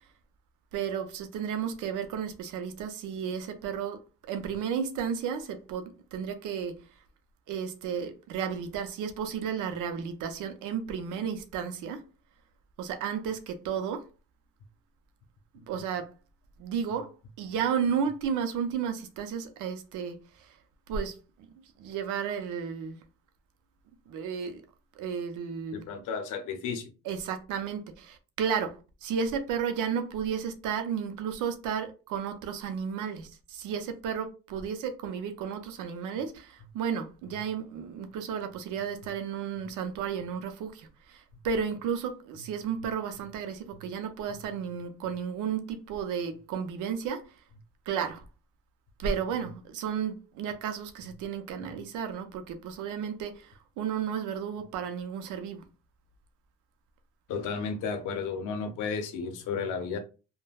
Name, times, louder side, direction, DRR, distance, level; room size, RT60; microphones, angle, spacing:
voice 1, 0.7-4.0 4.3-6.7 7.5-12.0 12.8-14.0 15.7-16.1 16.6-17.1 17.4-20.2 20.9-21.1 21.8-23.0 24.1-24.6 25.0-25.8 27.1-47.3 47.9-48.2 49.0-55.6, right 7 dB, 90° right, 0.5 m, -33 dB
voice 2, 25.7-26.9 57.3-60.0, left 5 dB, 85° left, 0.6 m, -33 dB
3.3 x 2.1 x 2.3 m
cardioid pair, 90°, 30 cm